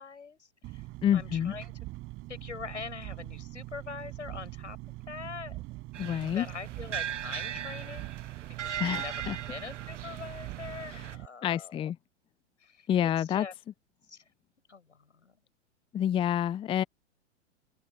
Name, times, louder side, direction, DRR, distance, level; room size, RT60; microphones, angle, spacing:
voice 1, 0.0-0.9 1.1-1.7 2.3-5.6 6.3-8.1 8.6-11.9 12.6-13.5 14.1-14.2 14.7-15.4, left 5 dB, 80° left, 7.5 m, -43 dB
Engine, 0.6-11.3, right 20 dB, 35° right, 5.1 m, -42 dB
voice 2, 1.0-1.5 6.0-6.5 8.8-9.4 11.4-12.0 12.9-13.5 15.9-16.8, left 10 dB, 15° left, 0.7 m, -28 dB
sound 1, 5.9-11.2, right 9 dB, 85° right, 0.6 m, -39 dB
open air
figure-of-eight pair, 110°, 35 cm